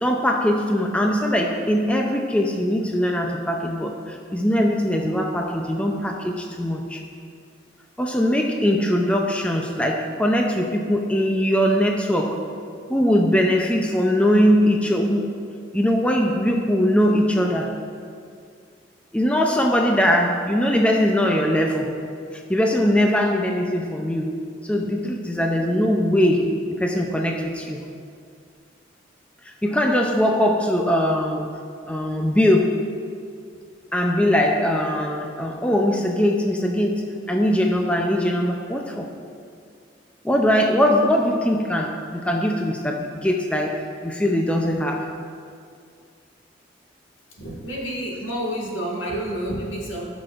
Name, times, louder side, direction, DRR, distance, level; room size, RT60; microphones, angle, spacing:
voice 1, 0.0-7.0 8.0-12.5 12.9-15.3 15.7-17.8 19.1-21.9 22.3-27.8 29.4-31.5 31.9-32.8 33.9-39.1 40.2-45.1, equal, 5° left, 1 dB, 0.5 m, -21 dB
voice 2, 47.3-50.1, right 1 dB, 85° left, -4 dB, 1.8 m, -29 dB
17.0 x 6.1 x 2.5 m, 2.3 s
head